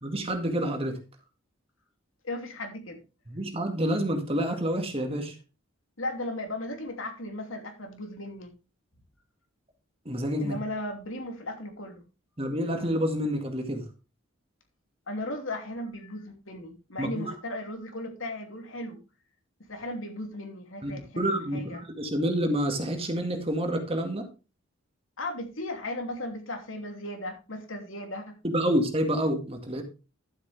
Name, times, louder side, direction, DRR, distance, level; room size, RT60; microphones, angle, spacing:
voice 1, 0.0-1.0 3.3-5.3 10.1-10.6 12.4-13.8 17.0-17.3 20.8-24.3 28.4-29.8, equal, 30° right, 4 dB, 2.0 m, -28 dB
voice 2, 2.2-3.0 6.0-8.5 10.4-12.0 15.1-19.0 19.7-21.8 25.2-28.4, left 1 dB, 75° left, 4 dB, 2.9 m, -36 dB
12.0 x 7.9 x 3.4 m, 0.31 s
head